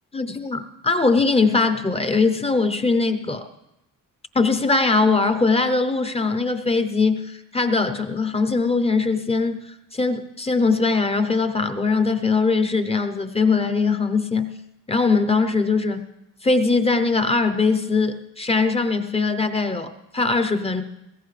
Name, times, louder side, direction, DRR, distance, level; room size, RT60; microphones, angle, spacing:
voice 1, 0.1-3.5 4.3-9.7 9.9-14.5 14.9-16.0 16.4-20.8, left 4 dB, 15° left, 9 dB, 0.7 m, -21 dB
20.0 x 17.0 x 3.3 m, 0.89 s
cardioid pair, 150°, 34 cm